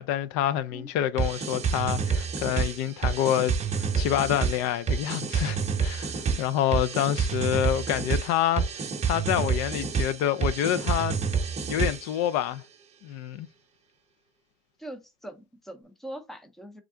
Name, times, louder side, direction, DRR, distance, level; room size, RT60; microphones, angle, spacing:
voice 1, 0.0-11.2 11.7-12.6 13.0-13.5, left 11 dB, 55° left, 0.4 m, -27 dB
sound 1, 1.2-12.2, right 5 dB, 20° right, 0.8 m, -28 dB
voice 2, 14.8-16.8, right 1 dB, ahead, 0.6 m, -42 dB
3.6 x 3.2 x 3.6 m
supercardioid pair, 135°, 31 cm